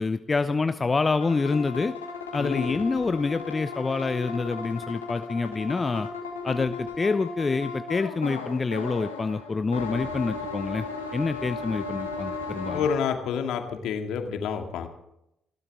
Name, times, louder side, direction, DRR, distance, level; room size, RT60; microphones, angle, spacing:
voice 1, 0.0-1.9 2.3-6.1 6.4-10.9 11.1-12.8, left 4 dB, 30° left, 12 dB, 0.7 m, -27 dB
sound 1, 1.2-13.0, left 4 dB, 80° left, 2.4 m, -35 dB
voice 2, 2.4-2.8 12.7-14.9, left 7 dB, 60° left, 5 dB, 2.2 m, -29 dB
28.5 x 12.0 x 3.6 m, 0.80 s
figure-of-eight pair, 45°, 0 cm